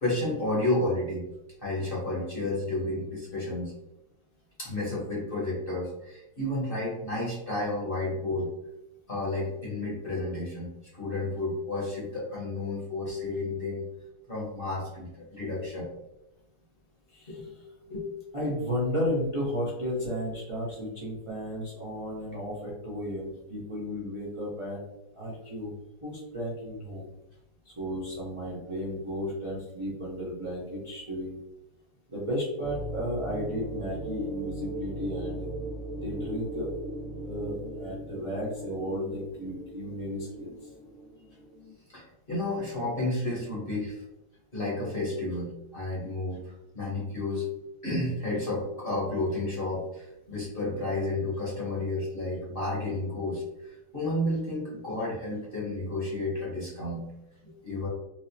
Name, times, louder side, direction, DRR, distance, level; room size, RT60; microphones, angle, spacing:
voice 1, 0.0-1.2 1.6-3.7 4.6-8.5 9.1-13.8 14.3-15.9 17.3-17.5 17.9-18.1 41.9-44.0 44.5-47.4 47.8-57.0 57.4-57.9, left 2 dB, 40° left, -6 dB, 0.9 m, -31 dB
voice 2, 17.1-17.5 18.3-24.8 25.1-25.7 26.0-27.1 27.6-31.4 32.1-35.5 36.0-36.7 37.2-40.7, equal, 45° right, -7 dB, 0.4 m, -33 dB
sound 1, 32.6-41.7, right 2 dB, 90° left, 1.5 m, -39 dB
4.5 x 2.0 x 2.7 m, 0.91 s
omnidirectional pair, 1.9 m